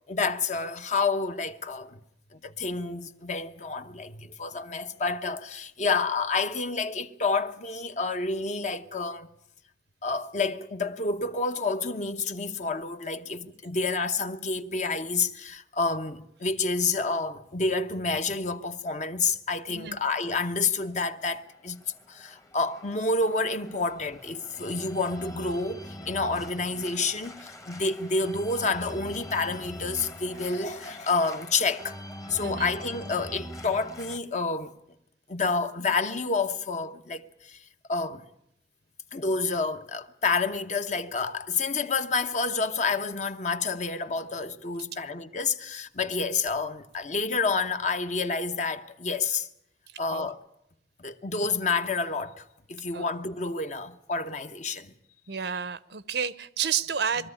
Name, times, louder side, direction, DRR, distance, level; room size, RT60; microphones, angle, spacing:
voice 1, 0.1-2.0 2.3-9.3 10.0-21.8 22.1-32.0 32.3-34.7 35.3-37.6 37.9-38.2 39.1-49.5 50.0-50.4 51.0-54.9, left 4 dB, 45° left, 1.0 m, -29 dB
Organ, 21.1-34.2, equal, 20° left, 1.1 m, -43 dB
voice 2, 32.4-32.7 49.9-50.3 52.9-53.1 55.3-57.3, right 7 dB, 65° right, 0.7 m, -31 dB
22.0 x 14.0 x 9.9 m
head